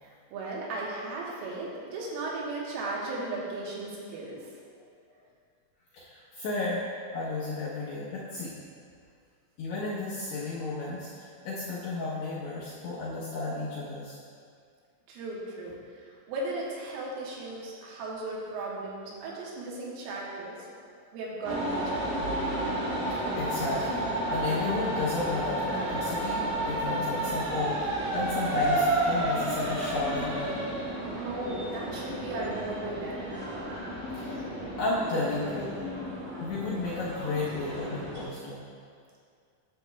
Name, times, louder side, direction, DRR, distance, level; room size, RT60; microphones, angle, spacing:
voice 1, 0.0-4.5 15.1-20.6 21.1-22.2 31.2-33.4 34.3-34.4, right 2 dB, 80° right, -4 dB, 3.6 m, -36 dB
voice 2, 5.9-6.8 7.1-8.5 9.6-14.2 23.4-27.8 28.1-30.6 34.1-34.5 34.8-35.8 36.4-38.6, left 3 dB, 75° left, -9 dB, 2.5 m, -33 dB
sound 1, 21.4-38.2, right 1 dB, 60° right, 2.1 m, -31 dB
11.0 x 7.1 x 2.3 m, 2.2 s
omnidirectional pair, 5.9 m